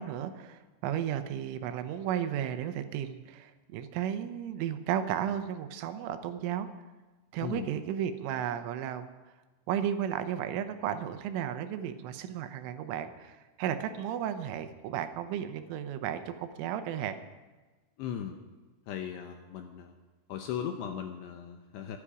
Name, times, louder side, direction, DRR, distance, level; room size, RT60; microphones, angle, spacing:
voice 1, 0.0-6.7 7.3-9.1 9.7-17.2, right 9 dB, 80° right, 9 dB, 3.3 m, -34 dB
voice 2, 18.0-18.4 18.9-20.0 20.3-22.0, left 9 dB, 80° left, 5 dB, 2.6 m, -37 dB
24.0 x 9.9 x 5.0 m, 1.2 s
omnidirectional pair, 5.7 m